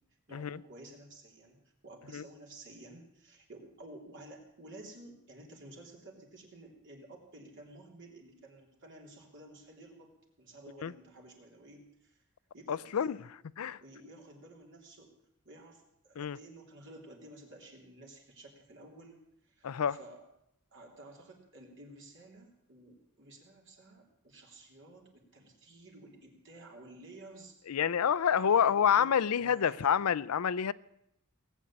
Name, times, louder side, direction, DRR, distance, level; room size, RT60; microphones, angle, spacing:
voice 1, 0.3-10.1 10.4-12.2 12.5-13.3 13.8-15.1 15.4-20.2 20.7-27.7 28.2-29.1 29.3-30.0, right 2 dB, 60° right, 3.3 m, -53 dB
voice 2, 12.7-13.3 13.6-13.8 16.2-16.4 19.6-20.0 27.7-30.7, left 8 dB, 85° left, 0.5 m, -28 dB
18.5 x 8.2 x 8.6 m
head